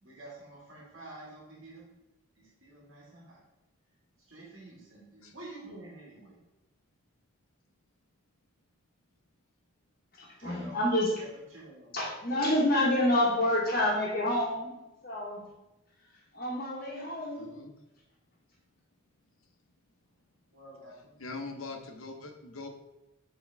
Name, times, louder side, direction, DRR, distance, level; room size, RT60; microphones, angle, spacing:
voice 1, 0.0-1.9 2.4-3.4 4.3-6.4 10.4-10.8 11.2-11.9 20.5-21.1, right 2 dB, 75° right, -4 dB, 2.0 m, -49 dB
voice 2, 10.1-11.1 11.9-14.8 15.0-15.4 16.3-17.5, left 1 dB, 45° left, -4 dB, 1.3 m, -28 dB
voice 3, 17.3-17.7 19.4-19.6 21.2-22.7, left 3 dB, 85° left, 4 dB, 1.0 m, -42 dB
8.0 x 3.8 x 3.4 m, 0.95 s
head